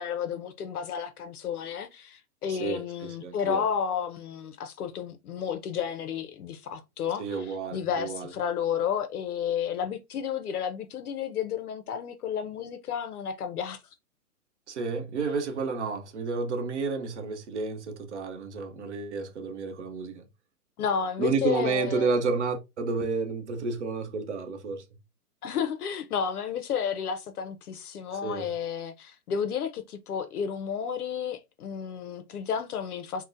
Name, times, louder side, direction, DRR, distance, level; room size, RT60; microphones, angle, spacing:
voice 1, 0.0-13.8 20.8-22.1 25.4-33.2, left 7 dB, 70° left, 0.6 m, -32 dB
voice 2, 2.5-3.6 7.2-8.3 14.7-20.2 21.2-24.8 28.2-28.5, right 4 dB, 50° right, 0.7 m, -31 dB
3.8 x 2.1 x 2.5 m
hypercardioid pair, 170°, 47 cm